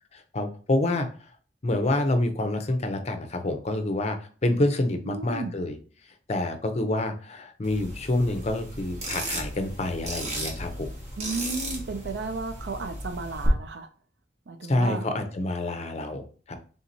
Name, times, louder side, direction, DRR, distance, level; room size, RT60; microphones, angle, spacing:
voice 1, 0.3-1.1 1.6-5.8 6.3-10.9 14.7-16.6, left 2 dB, 40° left, 7 dB, 0.6 m, -27 dB
voice 2, 5.0-5.5 11.2-13.9 14.5-15.1, right 3 dB, 70° right, 7 dB, 0.4 m, -33 dB
sound 1, 7.6-13.5, right 1 dB, 40° right, 1.2 m, -35 dB
3.5 x 2.8 x 3.9 m, 0.40 s
head